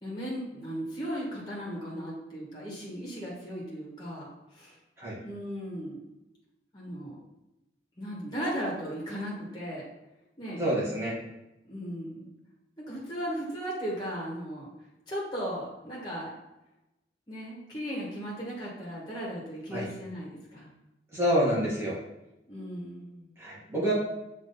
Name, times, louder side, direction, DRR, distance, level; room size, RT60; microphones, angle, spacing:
voice 1, 0.0-4.3 4.5-4.8 5.2-6.0 6.7-7.2 8.0-9.8 10.4-10.6 11.6-12.3 12.8-14.7 15.1-16.3 17.3-20.7 22.5-23.4, equal, 20° left, -5 dB, 1.6 m, -36 dB
voice 2, 10.6-11.2 19.7-19.9 21.1-21.9 23.4-23.9, equal, 15° right, -8 dB, 1.9 m, -27 dB
7.3 x 3.2 x 4.1 m, 0.93 s
head